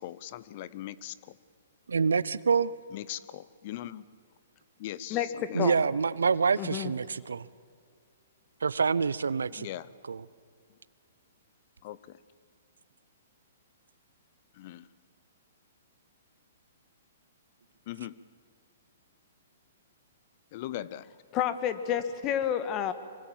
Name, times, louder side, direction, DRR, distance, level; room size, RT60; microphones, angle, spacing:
voice 1, 0.0-1.4 2.9-4.0 4.8-5.7 9.6-9.9 11.8-12.2 14.5-14.9 17.9-18.2 20.5-21.1, left 13 dB, 45° left, 18 dB, 0.7 m, -40 dB
voice 2, 1.9-2.7 5.5-7.5 8.6-9.7 10.1-10.2, right 5 dB, 85° right, 19 dB, 0.7 m, -26 dB
voice 3, 5.1-5.8 6.6-6.9 21.3-22.9, left 10 dB, 30° left, 11 dB, 1.7 m, -30 dB
25.0 x 23.5 x 7.4 m, 2.3 s
hypercardioid pair, 130°, 0 cm